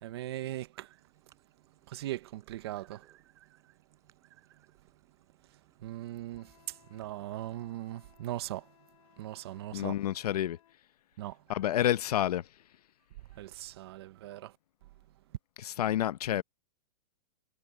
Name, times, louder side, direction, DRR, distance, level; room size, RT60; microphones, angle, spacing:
voice 1, 0.0-1.0 1.9-3.5 5.8-8.7 9.2-10.0 11.2-11.4 13.3-14.5, right 14 dB, 40° right, 0.9 m, -40 dB
sound 1, 0.9-7.7, right 11 dB, 15° right, 4.5 m, -69 dB
Wind instrument woodwind instrument, 6.3-10.8, left 12 dB, 60° left, 6.6 m, -64 dB
voice 2, 9.7-10.6 11.5-12.5 15.6-16.4, left 11 dB, 85° left, 0.8 m, -29 dB
supercardioid pair, 175°, 19 cm